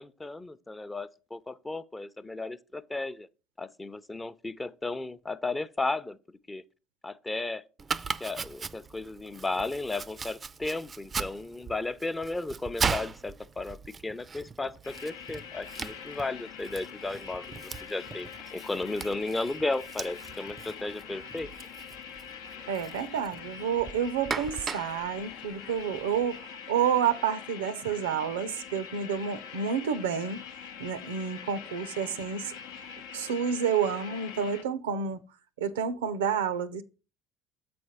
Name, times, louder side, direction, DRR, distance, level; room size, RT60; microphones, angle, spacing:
voice 1, 0.0-3.3 3.6-6.2 6.5-6.6 7.0-7.6 8.2-13.8 14.0-21.5, left 2 dB, 15° left, 0.5 m, -34 dB
Domestic sounds home sounds, 7.8-26.2, right 5 dB, 30° right, 0.4 m, -39 dB
sound 1, 14.8-34.6, left 7 dB, 75° left, 0.7 m, -44 dB
voice 2, 22.7-30.4 30.8-32.5 33.1-35.2 35.6-36.8, right 7 dB, 90° right, 0.5 m, -29 dB
7.8 x 4.3 x 4.8 m
hypercardioid pair, 70°, 0 cm